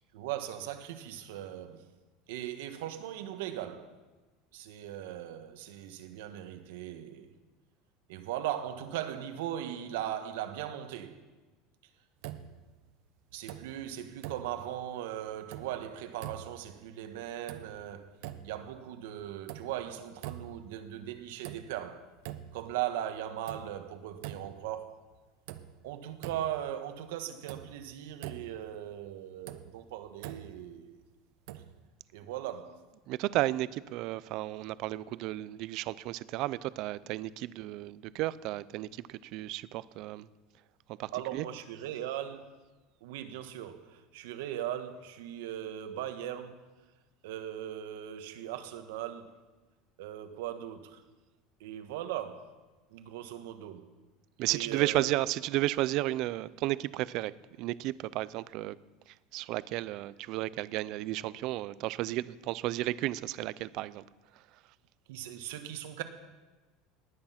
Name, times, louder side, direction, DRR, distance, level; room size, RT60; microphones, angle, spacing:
voice 1, 0.1-1.8 2.3-3.9 4.5-7.3 8.1-11.2 13.3-18.1 18.4-22.1 22.5-25.0 25.8-31.0 32.1-32.8 37.5-37.6 41.1-42.5 43.0-46.6 47.2-49.4 50.0-51.0 51.6-52.5 52.9-53.8 54.5-55.2 65.1-66.0, right 11 dB, 80° right, 1.4 m, -39 dB
sound 1, 12.2-12.9 13.3-13.9 14.2-14.9 15.3-15.9 16.2-16.8 17.2-17.9 18.2-18.8 19.2-19.9 20.2-20.8 21.2-21.9 22.2-22.8 23.2-24.7 25.1-25.2 25.5-26.7 27.0-27.1 27.5-28.7 29.2-30.7 31.5-31.9, right 12 dB, 65° right, 0.8 m, -45 dB
voice 2, 33.1-40.3 41.0-41.4 54.4-57.3 57.6-58.8 59.3-64.0, right 16 dB, 45° right, 0.4 m, -33 dB
19.5 x 9.8 x 5.8 m
cardioid pair, 180°, 0 cm